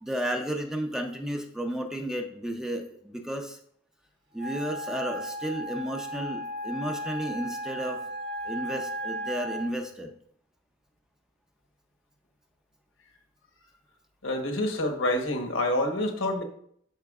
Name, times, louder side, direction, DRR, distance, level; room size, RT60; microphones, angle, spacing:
voice 1, 0.0-3.6 4.3-8.0 8.4-10.1, right 1 dB, 5° right, 0.6 m, -33 dB
Wind instrument woodwind instrument, 4.4-9.7, equal, 65° right, 1.1 m, -35 dB
voice 2, 14.2-16.4, left 1 dB, 75° left, 1.1 m, -27 dB
12.5 x 4.4 x 2.4 m
head